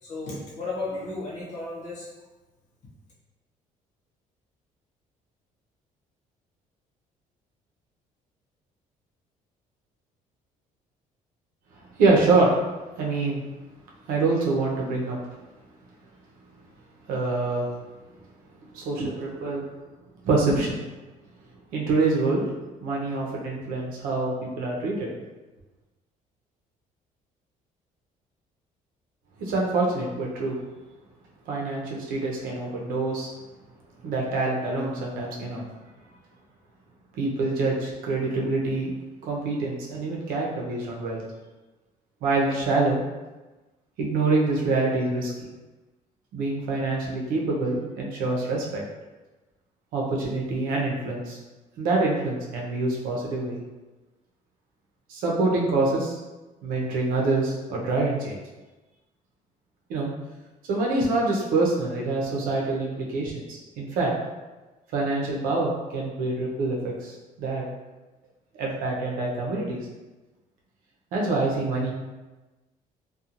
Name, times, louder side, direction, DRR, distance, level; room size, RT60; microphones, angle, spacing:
voice 1, 0.0-2.1, left 2 dB, 55° left, -6 dB, 1.0 m, -34 dB
voice 2, 12.0-12.6 12.9-13.4 14.1-15.2 17.1-17.7 18.7-19.6 20.2-20.8 21.7-22.4 22.8-25.1 29.4-30.6 31.5-33.3 34.0-35.6 37.1-38.9 39.2-41.2 42.2-43.0 44.0-45.3 46.3-48.8 49.9-51.4 51.8-53.6 55.1-56.2 56.6-58.4 59.9-60.1 60.7-64.1 64.9-67.7 68.6-69.8 71.1-71.9, right 3 dB, 90° right, -2 dB, 0.7 m, -25 dB
2.8 x 2.3 x 2.4 m, 1.1 s
cardioid pair, 155°, 14 cm